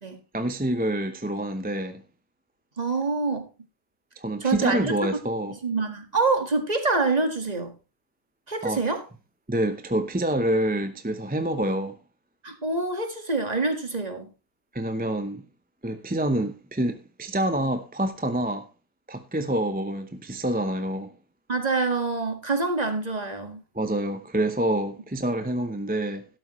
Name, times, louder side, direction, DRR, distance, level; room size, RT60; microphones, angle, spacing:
voice 1, 0.3-2.0 4.2-5.6 8.6-8.8 9.5-12.0 14.7-15.4 15.8-18.7 19.1-21.1 23.7-26.2, right 1 dB, 10° right, 0.7 m, -27 dB
voice 2, 2.8-3.5 4.4-5.0 5.6-7.8 8.5-9.0 12.4-14.3 21.5-23.6, right 3 dB, 40° right, 1.9 m, -26 dB
12.0 x 12.0 x 3.1 m
omnidirectional pair, 1.0 m